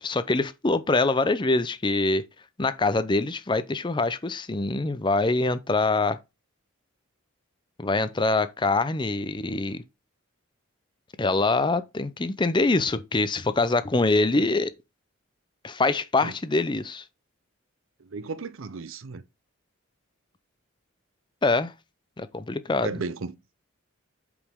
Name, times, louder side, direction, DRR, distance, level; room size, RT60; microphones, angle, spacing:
voice 1, 0.0-2.2 2.6-6.2 7.8-9.8 11.2-14.7 15.6-17.0 21.4-21.7 22.2-22.9, left 3 dB, 20° left, 0.5 m, -24 dB
voice 2, 18.0-19.2 22.8-23.4, right 4 dB, 70° right, 0.6 m, -34 dB
8.3 x 5.1 x 3.6 m
head